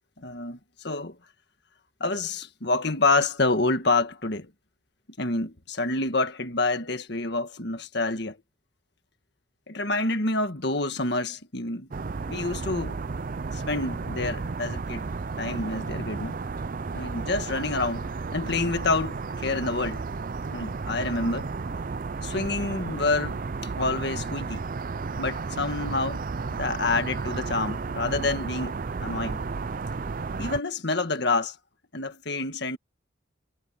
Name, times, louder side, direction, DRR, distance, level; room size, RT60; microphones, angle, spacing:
voice 1, 0.2-1.2 2.0-4.5 5.2-8.4 9.7-11.9 12.3-13.0 13.5-15.1 15.4-16.4 16.9-20.0 20.5-21.5 22.2-23.4 23.8-24.6 25.2-26.3 26.5-28.8 29.0-29.4 30.4-31.6 31.9-32.8, left 3 dB, 55° left, 1.7 m, -28 dB
sound 1, 11.9-30.6, right 4 dB, 45° right, 0.5 m, -33 dB
head